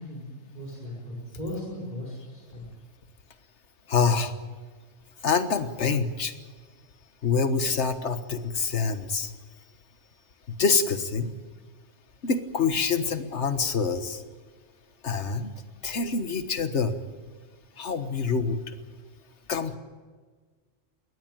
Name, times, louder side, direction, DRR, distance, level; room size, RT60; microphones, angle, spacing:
voice 1, 0.0-2.6, left 1 dB, 35° left, -4 dB, 5.1 m, -37 dB
voice 2, 3.9-4.3 5.2-6.3 7.2-9.3 10.6-11.3 12.2-14.2 15.0-15.5 15.8-17.0 17.8-18.7 19.5-19.8, left 5 dB, 65° left, 9 dB, 1.7 m, -26 dB
22.0 x 18.0 x 9.1 m, 1.5 s
omnidirectional pair, 1.3 m